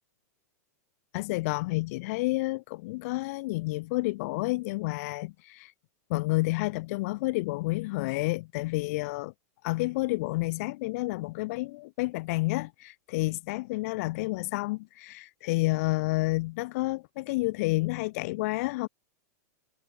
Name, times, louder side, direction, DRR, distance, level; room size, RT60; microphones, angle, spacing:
voice 1, 1.1-5.7 6.1-9.3 9.6-18.9, left 22 dB, 60° left, 2.2 m, -30 dB
hypercardioid pair, 125°, 9 cm